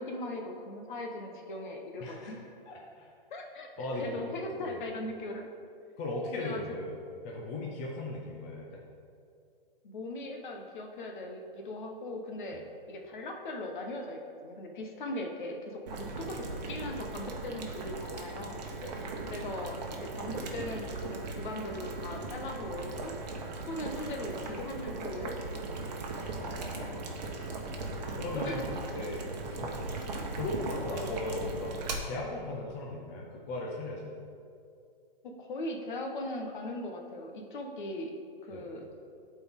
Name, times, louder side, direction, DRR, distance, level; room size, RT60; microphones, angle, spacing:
voice 1, 0.0-2.4 3.3-3.7 4.0-5.4 6.3-6.6 9.8-12.6 12.9-18.6 19.3-23.1 23.7-25.8 28.0-28.6 35.2-38.1 38.4-38.9, left 1 dB, 55° left, 3 dB, 1.1 m, -39 dB
voice 2, 2.0-2.3 2.7-3.1 3.8-4.3 4.6-4.8 6.0-6.9 7.2-8.8 12.5-12.6 18.8-19.0 26.3-27.2 28.2-28.6 28.9-29.8 30.3-31.7 32.0-34.1 38.5-38.7, left 2 dB, 15° left, -2 dB, 0.5 m, -38 dB
Boiling, 15.9-31.9, right 3 dB, 45° right, 1.1 m, -38 dB
12.0 x 4.4 x 3.6 m, 2.4 s
hypercardioid pair, 155°, 29 cm